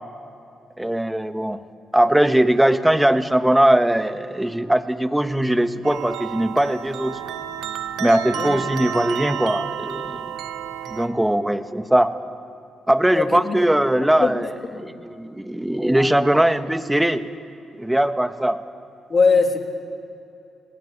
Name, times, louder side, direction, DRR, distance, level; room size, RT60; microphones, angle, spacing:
voice 1, 0.8-1.6 1.9-7.2 8.0-10.4 10.9-12.2 12.9-17.3 17.8-18.6, right 1 dB, 10° right, 10 dB, 1.4 m, -20 dB
sound 1, 5.8-11.1, right 9 dB, 85° right, 1.2 m, -31 dB
voice 2, 13.1-13.5 14.2-14.3 14.8-14.9 19.1-19.6, left 4 dB, 45° left, 4 dB, 3.1 m, -19 dB
29.5 x 18.0 x 8.6 m, 2.8 s
supercardioid pair, 65°, 0 cm